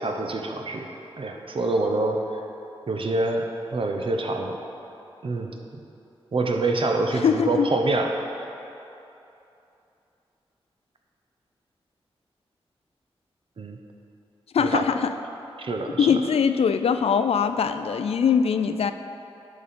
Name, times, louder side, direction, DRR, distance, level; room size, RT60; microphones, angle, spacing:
voice 1, 0.0-2.4 2.9-3.4 3.7-4.6 5.2-5.8 6.3-8.1 13.6-13.8 14.6-14.8 15.6-16.2, right 2 dB, 60° right, 3 dB, 0.8 m, -26 dB
voice 2, 7.1-7.7 14.5-15.1 16.0-18.9, left 6 dB, 80° left, 10 dB, 0.4 m, -22 dB
11.0 x 5.2 x 4.3 m, 2.8 s
wide cardioid pair, 75°, 10 cm